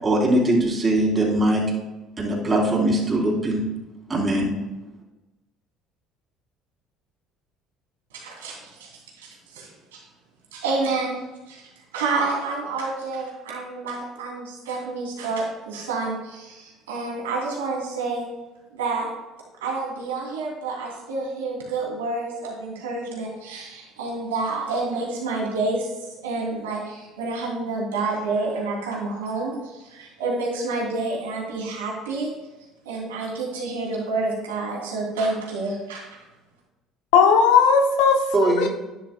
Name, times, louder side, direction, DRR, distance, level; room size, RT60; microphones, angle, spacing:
voice 1, 0.0-1.7 2.2-3.7 4.1-4.5 38.3-38.7, right 1 dB, 30° right, -3 dB, 3.5 m, -21 dB
voice 2, 8.1-8.9 9.2-10.0 10.5-11.1 11.5-18.3 18.7-19.1 19.6-32.3 32.8-36.1, right 3 dB, 85° right, -2 dB, 2.8 m, -29 dB
voice 3, 37.1-38.7, left 6 dB, 75° left, 4 dB, 0.7 m, -17 dB
11.0 x 11.0 x 2.2 m, 1.1 s
hypercardioid pair, 65°, 0 cm